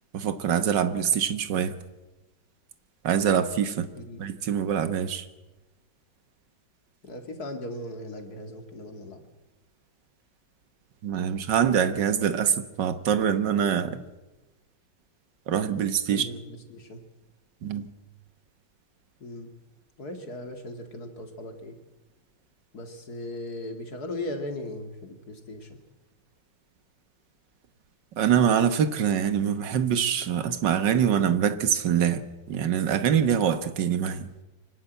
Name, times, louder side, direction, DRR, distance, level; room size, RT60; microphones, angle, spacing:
voice 1, 0.1-1.8 3.0-3.9 4.2-5.3 11.0-14.0 15.5-16.3 17.6-17.9 28.2-32.2 32.5-34.3, right 8 dB, 70° right, 1.8 m, -24 dB
voice 2, 7.0-9.2 16.1-17.0 19.2-19.5 20.0-21.8 22.7-25.8, left 1 dB, 55° left, 2.6 m, -38 dB
24.5 x 12.5 x 9.2 m
omnidirectional pair, 2.1 m